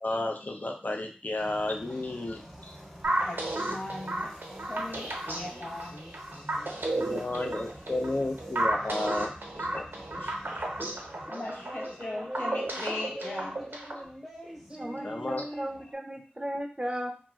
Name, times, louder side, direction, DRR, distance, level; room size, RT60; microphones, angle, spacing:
voice 1, 0.0-2.4 7.0-9.8 15.0-15.4, left 2 dB, 50° left, 2 dB, 0.5 m, -32 dB
sound 1, 1.4-15.9, equal, ahead, 0.8 m, -45 dB
sound 2, 3.0-14.1, right 1 dB, 75° right, 0.6 m, -33 dB
voice 2, 3.2-4.4 4.7-6.5 6.7-7.0 7.4-7.5 9.1-9.3 9.7-10.8 11.1-13.7, left 1 dB, 85° left, -5 dB, 0.9 m, -40 dB
voice 3, 14.8-17.1, equal, 30° right, 2 dB, 0.5 m, -35 dB
2.9 x 2.4 x 2.3 m, 0.38 s
wide cardioid pair, 40°, 4 cm